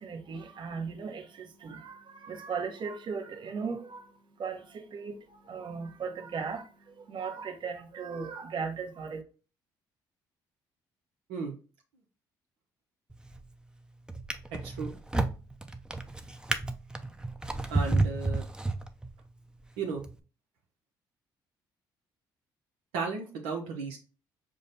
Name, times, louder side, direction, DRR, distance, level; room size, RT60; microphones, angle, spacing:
voice 1, 0.0-9.2, right 5 dB, 55° right, 1.1 m, -37 dB
Drawer open or close, 13.1-13.5 14.1-19.3 20.0-20.1, right 2 dB, 10° right, 0.5 m, -31 dB
voice 2, 14.5-14.9 17.7-18.5 19.8-20.0 22.9-24.0, right 5 dB, 90° right, 0.8 m, -34 dB
4.9 x 2.2 x 4.0 m
supercardioid pair, 65°, 10 cm